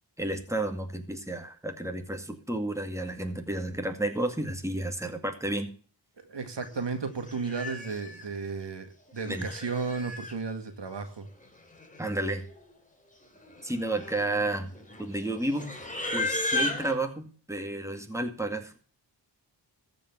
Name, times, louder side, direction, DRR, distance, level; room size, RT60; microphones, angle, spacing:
voice 1, 0.2-5.7 9.3-9.5 12.0-12.4 13.6-14.7 15.0-15.7 16.1-18.7, right 1 dB, 5° right, 5 dB, 2.2 m, -31 dB
voice 2, 6.2-11.3, right 4 dB, 65° right, 7 dB, 2.1 m, -34 dB
Livestock farm animals working animals, 6.7-6.9 7.3-8.2 9.1-10.4 11.4-11.5 11.7-12.1 12.4-12.7 13.4-16.9, left 2 dB, 15° left, 3.0 m, -35 dB
14.5 x 5.2 x 7.9 m, 0.42 s
cardioid pair, 55°, 45 cm